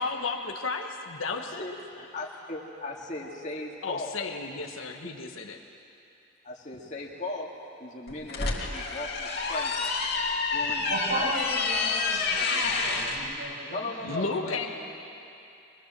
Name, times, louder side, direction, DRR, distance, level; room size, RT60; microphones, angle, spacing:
voice 1, 0.0-1.6 3.8-5.6 14.0-14.7, left 4 dB, 85° left, 4 dB, 1.5 m, -33 dB
voice 2, 1.6-4.2 4.7-5.2 6.4-7.5 7.8-9.8 10.5-11.3 12.9-13.0 13.7-14.7, left 2 dB, 35° left, -2 dB, 2.2 m, -38 dB
sound 1, 8.1-13.2, left 4 dB, 50° left, 2.8 m, -28 dB
voice 3, 10.9-13.8 14.0-14.7, right 1 dB, 75° right, -9 dB, 6.9 m, -35 dB
24.5 x 21.0 x 7.6 m, 2.7 s
head